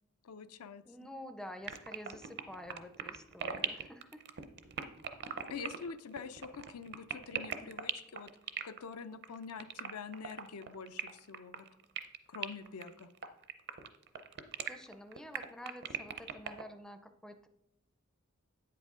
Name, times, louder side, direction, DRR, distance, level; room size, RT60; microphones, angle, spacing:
voice 1, 0.2-0.8 5.5-8.3 8.6-11.7 12.3-13.1, left 5 dB, 80° left, 11 dB, 0.5 m, -45 dB
voice 2, 0.9-4.2 14.7-17.5, left 1 dB, 5° left, 8 dB, 0.4 m, -49 dB
sound 1, 1.6-16.6, right 8 dB, 50° right, 0.6 m, -40 dB
8.7 x 7.7 x 3.7 m, 0.85 s
head